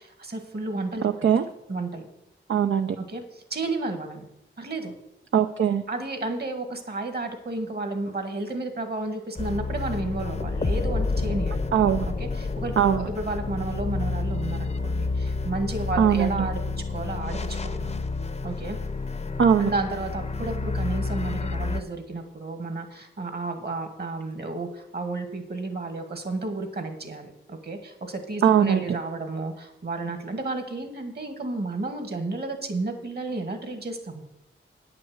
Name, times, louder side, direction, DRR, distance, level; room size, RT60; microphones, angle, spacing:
voice 1, 0.0-1.1 1.7-2.1 3.0-4.3 4.6-4.9 5.9-11.6 12.0-18.0 18.4-18.8 19.6-34.2, right 2 dB, 50° right, 6 dB, 1.7 m, -32 dB
voice 2, 1.0-1.4 2.5-3.0 5.3-5.8 11.7-12.1 12.8-13.1 16.0-16.5 19.4-19.7 28.4-28.8, right 8 dB, 70° right, 7 dB, 0.5 m, -20 dB
sound 1, 9.4-21.8, left 3 dB, 30° left, 0.7 m, -29 dB
9.5 x 5.9 x 7.9 m, 0.89 s
wide cardioid pair, 70°, 21 cm